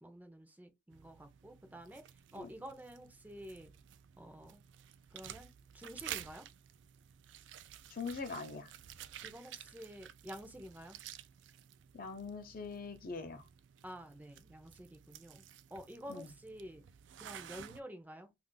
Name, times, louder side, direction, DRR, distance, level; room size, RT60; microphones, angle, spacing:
voice 1, 0.0-2.0 2.3-3.7 4.2-4.6 5.1-6.5 9.2-11.0 13.8-15.4 15.7-16.8 17.2-18.3, equal, 10° right, 0.5 m, -50 dB
sound 1, 0.9-17.8, right 10 dB, 80° right, 0.3 m, -52 dB
voice 2, 7.9-8.7 11.9-13.4 16.1-16.3, left 4 dB, 50° left, 0.5 m, -42 dB
2.4 x 2.4 x 3.7 m
head